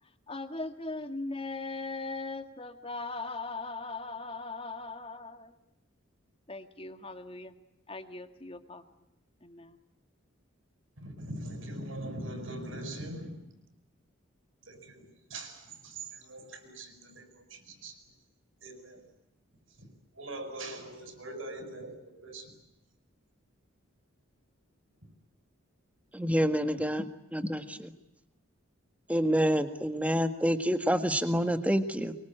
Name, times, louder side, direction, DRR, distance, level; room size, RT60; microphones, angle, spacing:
voice 1, 0.3-5.5 6.5-7.5 7.9-8.8 9.4-9.8, left 3 dB, 25° left, 8 dB, 1.9 m, -39 dB
voice 2, 11.0-13.4 14.6-18.0 18.6-19.1 19.8-19.9 20.1-22.5, right 1 dB, 75° right, 7 dB, 6.7 m, -42 dB
voice 3, 26.1-27.9 29.1-32.2, equal, 5° right, 8 dB, 1.7 m, -28 dB
24.0 x 23.5 x 9.0 m, 0.89 s
head